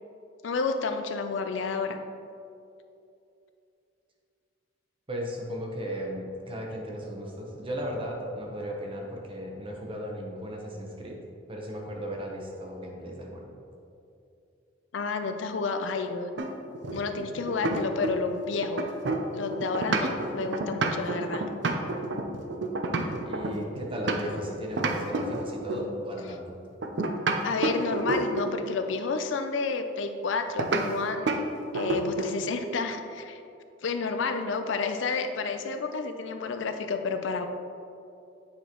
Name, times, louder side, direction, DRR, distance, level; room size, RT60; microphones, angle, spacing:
voice 1, 0.4-2.0 14.9-16.3 16.9-18.9 19.3-21.4 27.4-31.3 31.7-33.4 33.8-37.5, left 4 dB, 75° left, 7 dB, 0.5 m, -30 dB
voice 2, 5.1-11.2 11.5-13.5 23.2-26.6, equal, 30° right, 0 dB, 0.9 m, -36 dB
sound 1, 16.4-18.3 18.6-24.4 24.8-25.9 26.8-28.6 30.6-30.9 31.3-31.4 31.7-32.4, right 2 dB, 65° right, 0.5 m, -29 dB
8.2 x 4.9 x 3.0 m, 2.6 s
head